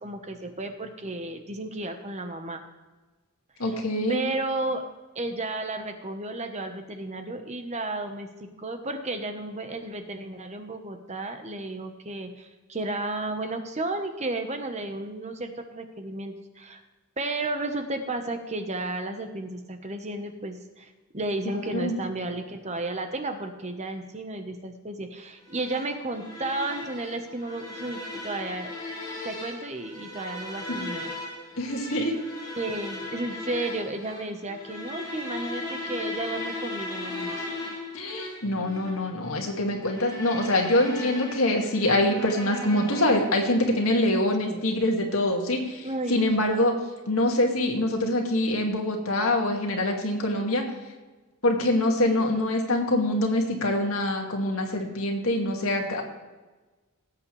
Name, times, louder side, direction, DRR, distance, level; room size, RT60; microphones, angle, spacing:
voice 1, 0.0-2.6 3.6-3.8 4.1-4.8 5.1-16.8 17.2-28.7 29.2-31.1 31.9-32.0 32.6-37.5 44.4-44.6 45.8-46.4, right 2 dB, 30° right, 6 dB, 1.1 m, -33 dB
voice 2, 3.6-4.2 21.7-21.9 30.7-30.8 31.6-32.1 37.9-46.7 47.1-50.7 51.4-56.0, left 1 dB, 75° left, 1 dB, 2.1 m, -25 dB
sound 1, 25.5-43.5, left 2 dB, 20° left, 4.2 m, -37 dB
18.0 x 8.2 x 3.3 m, 1.2 s
head